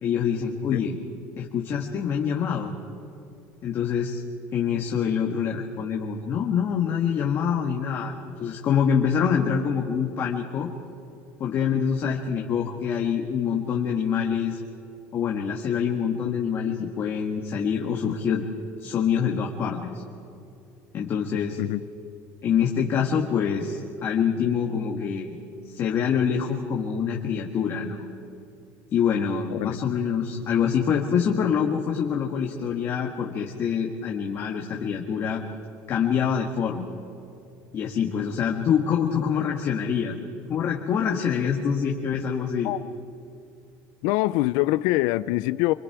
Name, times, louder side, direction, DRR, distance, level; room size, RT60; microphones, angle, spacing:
voice 1, 0.0-1.0 1.4-2.7 3.6-4.2 4.5-10.7 11.4-14.6 15.1-18.4 18.8-20.0 20.9-21.6 22.4-25.3 25.6-28.0 28.9-35.4 35.9-36.8 37.7-40.2 40.5-42.7, left 7 dB, 40° left, 0 dB, 1.5 m, -25 dB
voice 2, 44.0-45.7, left 18 dB, 70° left, 15 dB, 0.4 m, -24 dB
26.0 x 22.0 x 4.8 m, 2.6 s
cardioid pair, 140°, 7 cm